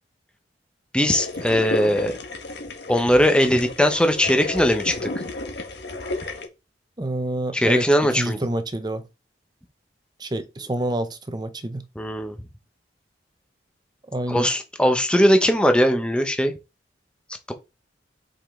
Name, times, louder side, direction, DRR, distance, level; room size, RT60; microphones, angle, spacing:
voice 1, 0.9-2.1 2.9-5.1 7.5-8.4 12.0-12.4 14.3-16.5, equal, 5° left, 1.0 m, -20 dB
sound 1, 1.1-6.5, left 2 dB, 70° left, 1.5 m, -32 dB
voice 2, 7.0-9.1 10.2-11.8 14.1-14.5, right 1 dB, 25° right, 0.7 m, -27 dB
5.5 x 5.1 x 3.8 m
head